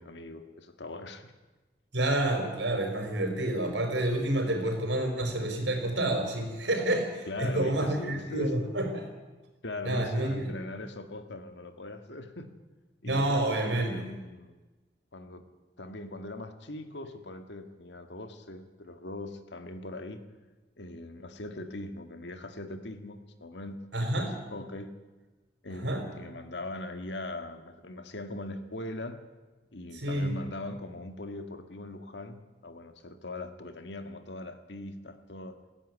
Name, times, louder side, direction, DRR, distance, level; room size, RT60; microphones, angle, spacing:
voice 1, 0.0-1.3 7.3-8.7 9.6-12.6 13.0-14.6 15.1-15.4 15.8-20.2 20.8-24.9 25.6-29.2 29.7-35.6, left 2 dB, 75° left, 8 dB, 1.8 m, -41 dB
voice 2, 1.9-9.0 9.8-10.5 13.0-14.0 23.9-24.3 25.8-26.0 29.9-30.3, right 1 dB, 80° right, 4 dB, 4.9 m, -29 dB
17.5 x 15.5 x 9.7 m, 1.2 s
head